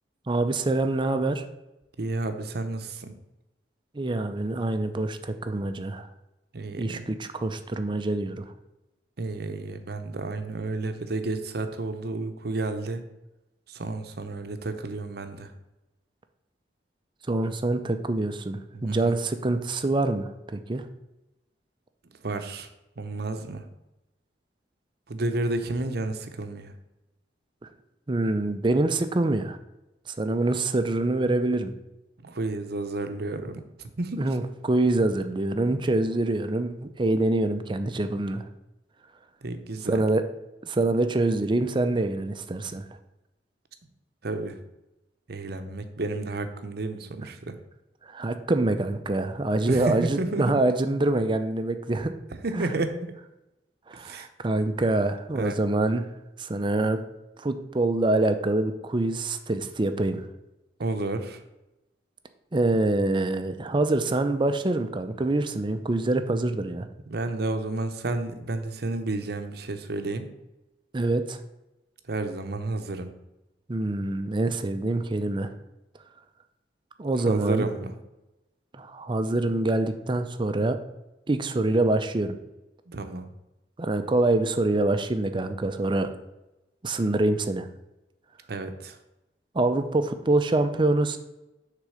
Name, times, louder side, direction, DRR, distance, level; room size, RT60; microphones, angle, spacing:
voice 1, 0.3-1.4 3.9-6.1 6.8-8.4 17.3-20.8 28.1-29.6 30.1-31.7 34.2-38.4 39.8-40.2 40.6-42.8 48.1-52.1 52.5-52.7 53.9-56.0 56.4-57.0 57.4-60.2 62.5-66.9 70.9-71.4 73.7-75.5 77.0-77.7 78.7-80.8 81.3-82.4 83.8-86.1 86.8-87.7 89.5-91.2, right 2 dB, 25° right, 9 dB, 0.5 m, -25 dB
voice 2, 2.0-3.1 6.5-7.1 9.2-13.0 13.7-15.5 18.7-19.2 22.2-22.7 23.0-23.6 25.1-26.7 32.2-34.2 35.6-35.8 39.4-40.0 44.2-44.6 45.3-47.6 49.7-50.5 52.4-53.1 54.0-54.3 55.3-55.6 60.8-61.4 67.1-70.3 72.1-73.1 77.3-77.9 82.9-83.3 88.5-89.0, right 2 dB, 60° right, 8 dB, 0.7 m, -31 dB
6.5 x 3.8 x 6.3 m, 0.96 s
head